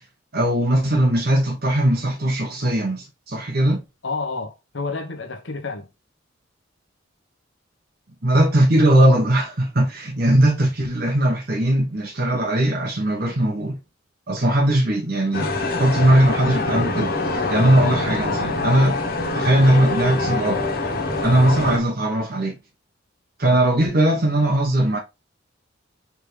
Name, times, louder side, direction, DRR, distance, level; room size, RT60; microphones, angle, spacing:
voice 1, 0.3-3.8 8.2-13.8 14.3-15.5 15.8-17.1 17.5-19.0 19.3-20.6 21.2-22.5 23.4-25.0, right 1 dB, 50° right, 1.0 m, -19 dB
voice 2, 4.0-5.9 21.4-21.6 23.4-23.6, left 3 dB, 70° left, 1.0 m, -30 dB
sound 1, 15.3-21.8, left 2 dB, 50° left, 1.5 m, -24 dB
4.7 x 3.6 x 3.2 m
head